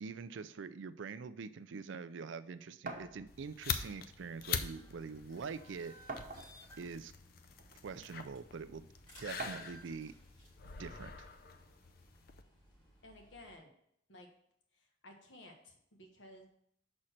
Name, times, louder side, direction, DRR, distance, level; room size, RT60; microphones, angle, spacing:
voice 1, 0.0-6.0 6.8-7.1 7.8-8.9 9.2-10.1 10.8-11.3, right 5 dB, 75° right, 14 dB, 0.4 m, -44 dB
sound 1, 2.9-13.5, equal, 25° left, 2.5 m, -60 dB
sound 2, 2.9-3.1 4.3-4.4 4.8-4.9 6.1-6.7 7.6-7.7 9.4-9.8, right 3 dB, 45° right, 0.9 m, -43 dB
sound 3, 3.3-12.4, left 6 dB, 50° left, 0.5 m, -44 dB
voice 2, 13.0-13.7 14.1-14.3 14.7-16.5, left 1 dB, 70° left, 2 dB, 1.4 m, -55 dB
6.2 x 4.3 x 6.5 m, 0.71 s
head